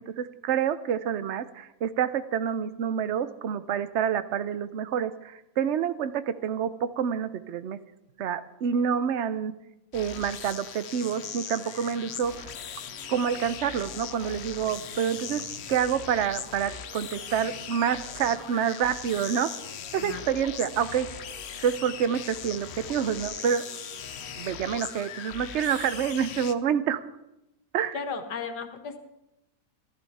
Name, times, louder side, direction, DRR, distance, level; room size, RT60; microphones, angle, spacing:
voice 1, 0.1-7.8 8.2-9.5 9.9-12.3 13.1-15.4 15.7-19.5 19.9-21.1 21.6-23.7 24.4-27.0 27.7-28.0, right 8 dB, 55° right, 13 dB, 0.8 m, -28 dB
sound 1, 9.9-26.5, left 8 dB, 55° left, 0.7 m, -39 dB
sound 2, 10.9-25.1, right 1 dB, 20° right, 7.4 m, -50 dB
voice 2, 27.9-29.0, left 5 dB, 80° left, 6 dB, 1.9 m, -35 dB
15.0 x 14.5 x 4.2 m, 0.89 s
omnidirectional pair, 1.7 m